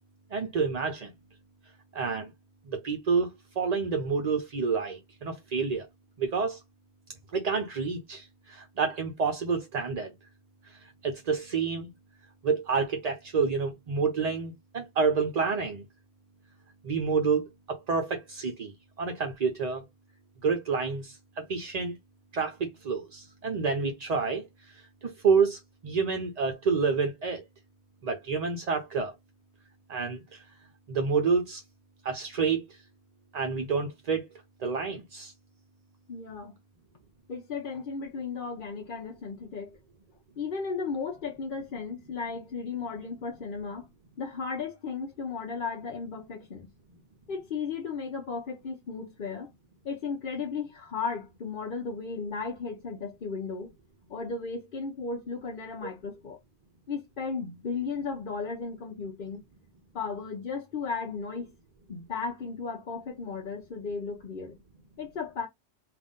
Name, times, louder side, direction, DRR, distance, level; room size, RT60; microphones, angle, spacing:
voice 1, 0.3-1.1 1.9-2.3 2.7-5.9 6.2-6.6 7.3-10.1 10.6-11.9 12.4-15.8 16.8-19.8 20.4-21.9 22.3-27.4 28.0-29.1 29.9-30.4 30.9-31.6 32.0-32.8 33.3-34.3 34.6-35.3 55.8-55.9, right 5 dB, 45° right, 0.6 m, -29 dB
voice 2, 36.1-36.6 37.3-39.8 40.4-43.9 44.2-46.7 47.3-49.5 49.8-53.7 54.1-56.4 56.9-59.4 59.9-61.5 61.9-64.6 65.0-65.5, left 5 dB, 55° left, 0.9 m, -35 dB
3.9 x 2.4 x 3.5 m
omnidirectional pair, 1.1 m